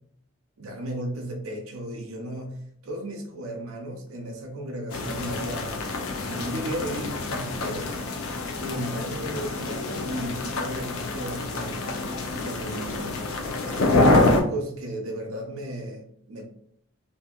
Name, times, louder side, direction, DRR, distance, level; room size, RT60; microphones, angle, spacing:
voice 1, 0.6-5.9 6.2-7.9 8.6-12.0 12.4-13.1 13.6-16.5, right 1 dB, 85° right, 0.6 m, -35 dB
sound 1, 4.9-14.4, left 2 dB, 85° left, 0.5 m, -26 dB
2.7 x 2.6 x 2.3 m
head